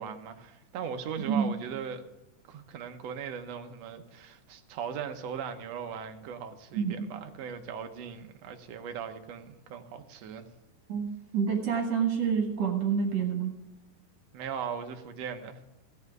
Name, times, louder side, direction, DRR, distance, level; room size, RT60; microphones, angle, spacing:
voice 1, 0.0-2.0 2.5-10.4 14.3-15.6, right 7 dB, 75° right, 7 dB, 1.5 m, -39 dB
voice 2, 6.7-7.1 10.9-13.5, right 6 dB, 55° right, 3 dB, 2.2 m, -28 dB
16.0 x 5.6 x 9.3 m, 0.95 s
omnidirectional pair, 4.0 m